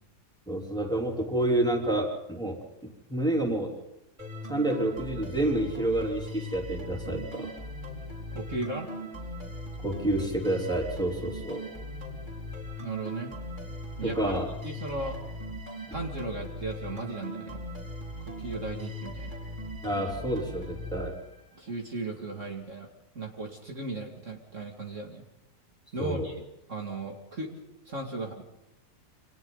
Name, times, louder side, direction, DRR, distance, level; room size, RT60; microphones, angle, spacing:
voice 1, 0.5-2.6 3.1-3.7 4.5-7.5 9.8-11.7 14.0-14.5 19.8-21.2 26.0-26.3, right 1 dB, ahead, 0 dB, 3.6 m, -28 dB
sound 1, 4.2-21.7, left 1 dB, 25° right, 5.3 m, -39 dB
voice 2, 8.3-8.9 12.8-13.3 14.0-14.4 14.6-15.2 15.9-17.6 18.2-19.3 21.5-22.9 23.1-25.2 25.9-26.4 26.7-27.5 27.9-28.4, right 2 dB, 45° right, 1 dB, 2.7 m, -36 dB
29.0 x 25.5 x 4.0 m, 0.90 s
omnidirectional pair, 1.8 m